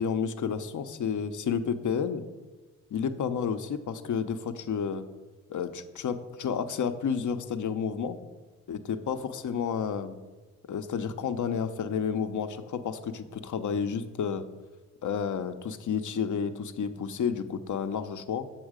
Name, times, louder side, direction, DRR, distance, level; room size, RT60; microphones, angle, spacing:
voice 1, 0.0-2.2 2.9-5.1 5.5-8.2 8.7-10.2 10.7-14.5 15.0-18.5, left 7 dB, 55° left, 10 dB, 0.8 m, -31 dB
7.1 x 5.7 x 5.0 m, 1.2 s
hypercardioid pair, 45°, 37 cm